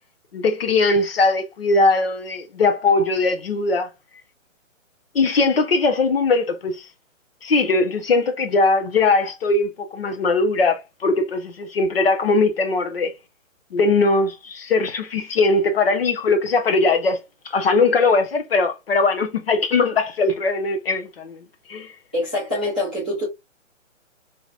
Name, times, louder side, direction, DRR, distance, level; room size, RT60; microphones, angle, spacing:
voice 1, 0.3-3.9 5.1-6.9 7.4-13.1 13.7-17.2 17.4-21.4 21.7-21.9, left 3 dB, 50° left, 0.8 m, -20 dB
voice 2, 22.1-23.3, left 1 dB, 5° left, 0.5 m, -24 dB
3.2 x 2.8 x 2.3 m
hypercardioid pair, 170°, 39 cm